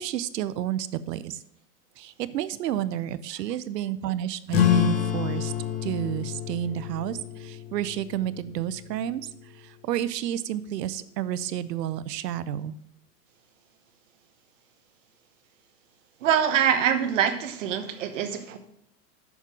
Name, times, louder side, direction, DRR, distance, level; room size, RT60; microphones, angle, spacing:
voice 1, 0.0-1.4 2.0-5.5 5.8-12.8, right 11 dB, 90° right, 15 dB, 0.7 m, -31 dB
sound 1, 4.5-9.6, left 9 dB, 35° left, 1.0 m, -28 dB
voice 2, 16.2-18.6, right 9 dB, 50° right, 8 dB, 1.0 m, -24 dB
7.2 x 5.4 x 6.0 m, 0.76 s
supercardioid pair, 170°, 47 cm